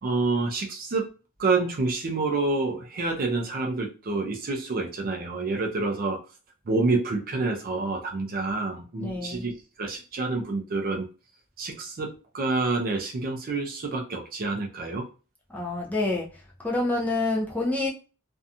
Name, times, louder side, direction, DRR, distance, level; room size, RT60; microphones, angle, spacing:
voice 1, 0.0-1.1 1.4-6.2 6.7-9.5 9.8-11.1 11.6-15.1, right 3 dB, 40° right, 2 dB, 0.4 m, -28 dB
voice 2, 9.0-9.4 15.5-16.3 16.6-17.9, left 2 dB, 5° left, -4 dB, 0.6 m, -27 dB
2.6 x 2.2 x 2.6 m, 0.35 s
head